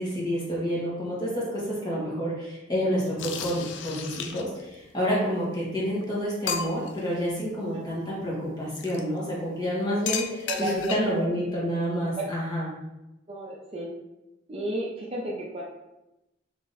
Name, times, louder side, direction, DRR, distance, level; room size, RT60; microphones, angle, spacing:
voice 1, 0.0-12.7, equal, 25° left, -7 dB, 1.4 m, -29 dB
sound 1, 3.2-4.7 5.6-5.7 6.0-6.1 6.5-7.0 8.7-9.0 10.1-11.2, left 6 dB, 90° left, 0.4 m, -34 dB
voice 2, 10.5-11.0 12.2-12.3 13.3-13.9 14.5-15.6, right 2 dB, 35° right, -3 dB, 0.6 m, -32 dB
3.5 x 2.9 x 4.0 m, 0.95 s
head